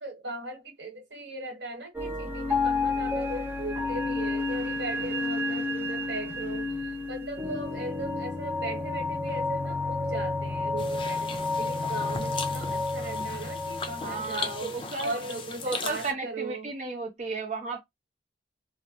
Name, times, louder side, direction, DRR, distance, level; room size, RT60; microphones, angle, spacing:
voice 1, 0.0-16.7, right 2 dB, 90° right, 1.1 m, -38 dB
sound 1, 1.9-15.3, left 3 dB, 10° right, 0.9 m, -31 dB
sound 2, 10.8-16.1, left 4 dB, 30° left, 0.4 m, -38 dB
voice 2, 14.0-15.1 15.6-17.8, right 3 dB, 40° right, 0.6 m, -34 dB
2.9 x 2.0 x 2.8 m
head